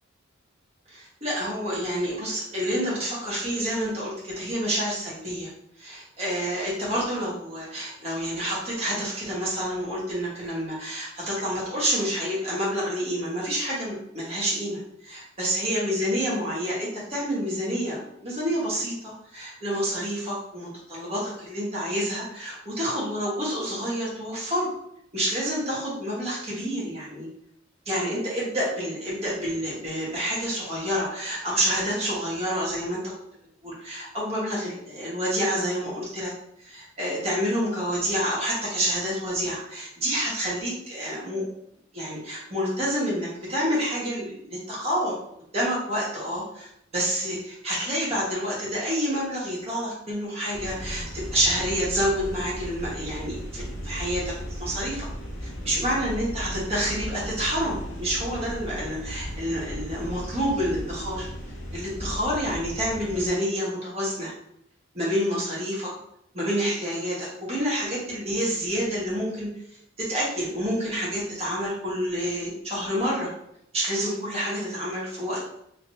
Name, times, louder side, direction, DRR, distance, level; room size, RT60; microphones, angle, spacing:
voice 1, 0.9-5.5 5.8-24.7 25.1-27.3 27.8-33.1 33.6-36.3 36.6-41.4 41.9-45.1 45.5-46.4 46.9-55.1 55.4-61.3 61.7-64.3 64.9-65.9 66.3-69.5 70.0-73.3 73.7-75.4, equal, 35° right, -6 dB, 1.4 m, -28 dB
sound 1, 50.5-63.3, equal, 65° left, 0.9 m, -36 dB
3.5 x 3.1 x 2.7 m, 0.75 s
head